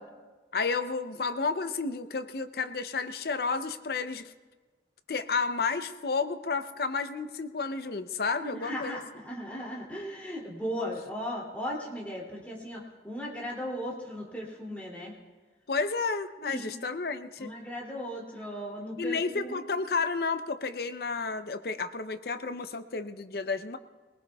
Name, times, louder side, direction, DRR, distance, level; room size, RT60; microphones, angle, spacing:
voice 1, 0.5-4.3 5.1-9.0 15.7-17.5 19.0-23.8, left 4 dB, 55° left, 10 dB, 0.6 m, -31 dB
voice 2, 8.4-15.1 16.4-16.8 17.4-19.6, equal, 10° left, -4 dB, 2.7 m, -37 dB
22.0 x 19.5 x 2.3 m, 1.4 s
head